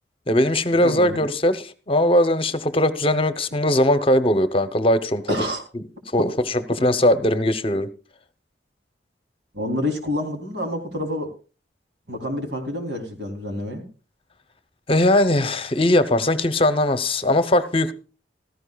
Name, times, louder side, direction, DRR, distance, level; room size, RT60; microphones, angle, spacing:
voice 1, 0.3-5.2 5.7-5.8 6.1-6.3 6.5-7.9 14.9-17.9, left 1 dB, 30° left, 0.9 m, -20 dB
voice 2, 0.8-1.2 5.3-5.6 9.5-11.3 12.1-13.8, left 1 dB, 70° right, 3.4 m, -28 dB
16.5 x 14.0 x 2.4 m
head